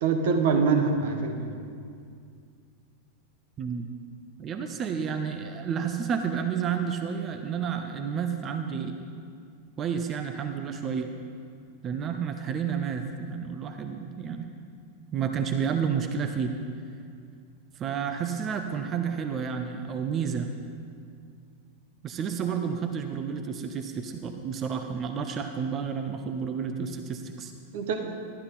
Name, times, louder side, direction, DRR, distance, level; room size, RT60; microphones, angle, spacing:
voice 1, 0.0-1.6 27.7-28.2, right 5 dB, 55° right, 6 dB, 1.1 m, -25 dB
voice 2, 3.6-3.9 4.4-9.0 9.8-11.1 11.8-14.5 15.1-16.5 17.8-20.5 22.0-27.5, right 7 dB, 30° right, 6 dB, 0.7 m, -30 dB
12.5 x 11.5 x 4.1 m, 2.3 s
figure-of-eight pair, 90°, 0 cm